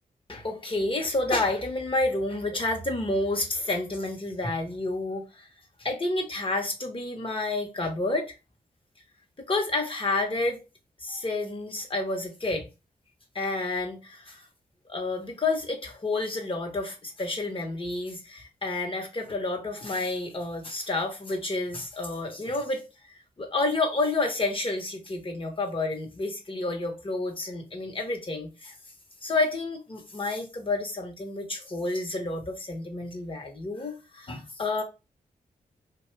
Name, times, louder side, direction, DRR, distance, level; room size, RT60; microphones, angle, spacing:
voice 1, 0.3-5.5 5.8-8.3 9.5-10.6 11.0-12.7 13.3-14.4 14.9-22.8 23.1-28.7 29.2-34.8, left 2 dB, 35° left, 1.0 m, -30 dB
2.7 x 2.3 x 3.1 m
cardioid pair, 55°, 15 cm